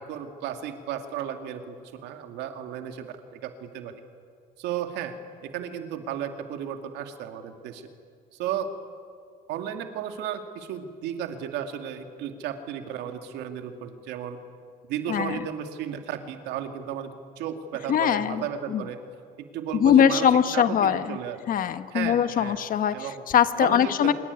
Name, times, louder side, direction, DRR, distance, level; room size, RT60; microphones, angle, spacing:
voice 1, 0.0-3.9 4.6-5.1 5.4-7.9 8.3-8.7 9.5-14.4 14.9-19.0 19.5-21.4 21.9-22.6 22.9-23.2 23.6-24.1, right 9 dB, 90° right, 6 dB, 2.4 m, -34 dB
voice 2, 15.1-15.4 17.9-18.4 18.7-18.8 19.7-21.2 21.5-24.1, left 9 dB, 55° left, 11 dB, 1.4 m, -22 dB
25.5 x 23.0 x 9.7 m, 2.3 s
cardioid pair, 110°, 17 cm